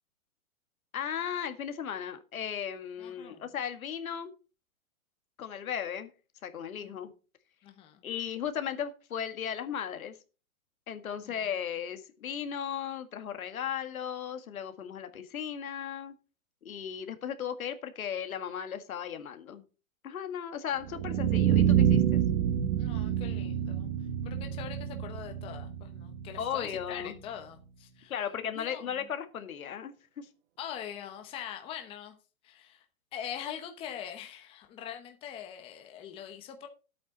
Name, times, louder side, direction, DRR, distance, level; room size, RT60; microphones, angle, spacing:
voice 1, 0.9-4.3 5.4-6.1 6.4-7.1 8.0-10.2 10.9-16.1 16.7-19.6 20.0-22.2 26.4-27.2 28.1-30.3, left 8 dB, 75° left, 1.9 m, -36 dB
voice 2, 3.0-3.5 6.8-7.1 7.6-8.0 11.2-11.5 22.8-23.9 24.2-28.2 28.5-29.1 30.6-32.2 32.4-32.8 33.1-36.7, left 9 dB, 15° left, 0.9 m, -43 dB
sound 1, 20.8-26.9, right 9 dB, 50° right, 1.2 m, -27 dB
10.5 x 8.6 x 4.2 m
hypercardioid pair, 155°, 42 cm